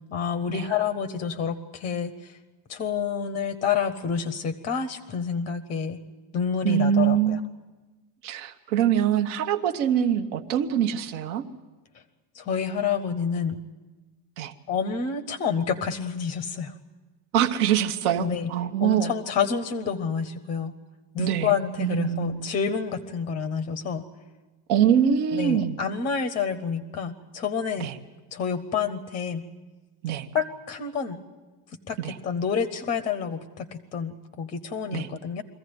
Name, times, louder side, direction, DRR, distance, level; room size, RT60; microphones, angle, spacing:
voice 1, 0.1-2.4 2.7-6.0 6.3-7.4 12.3-13.6 14.7-16.7 18.2-18.5 18.8-20.7 21.1-24.0 25.3-27.9 28.3-29.4 30.3-31.2 31.9-35.4, left 6 dB, 15° left, 11 dB, 0.6 m, -28 dB
voice 2, 6.6-7.4 8.2-11.5 14.4-14.5 17.3-19.1 21.2-22.5 24.7-25.8 27.8-28.0 30.0-30.3 32.0-32.2 34.9-35.1, right 9 dB, 65° right, 7 dB, 1.4 m, -24 dB
23.0 x 15.5 x 9.5 m, 1.2 s
cardioid pair, 180°, 46 cm